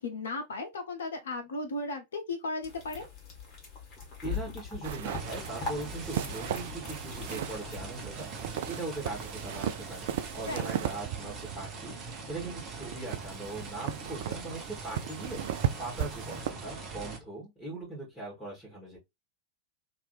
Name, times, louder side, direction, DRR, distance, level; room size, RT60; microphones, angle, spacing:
voice 1, 0.0-3.1 10.5-10.7, left 2 dB, 65° left, 0.6 m, -35 dB
sound 1, 2.6-7.9, left 4 dB, 35° left, 1.6 m, -41 dB
voice 2, 4.2-10.1 10.3-19.0, right 2 dB, 10° left, 1.6 m, -40 dB
sound 2, 4.8-16.5, right 10 dB, 55° right, 0.4 m, -37 dB
sound 3, 5.2-17.2, right 4 dB, 30° right, 0.8 m, -42 dB
2.9 x 2.6 x 3.1 m
figure-of-eight pair, 90°, 0 cm